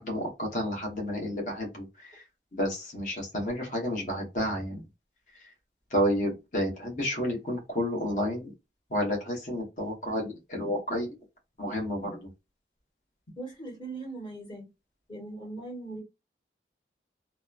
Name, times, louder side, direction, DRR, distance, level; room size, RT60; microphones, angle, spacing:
voice 1, 0.0-2.2 2.5-4.8 5.9-8.5 8.9-11.1 11.6-12.3, equal, 45° left, 1.0 m, -30 dB
voice 2, 13.4-14.7 15.1-16.0, right 2 dB, 30° left, 1.4 m, -39 dB
2.9 x 2.1 x 2.3 m
head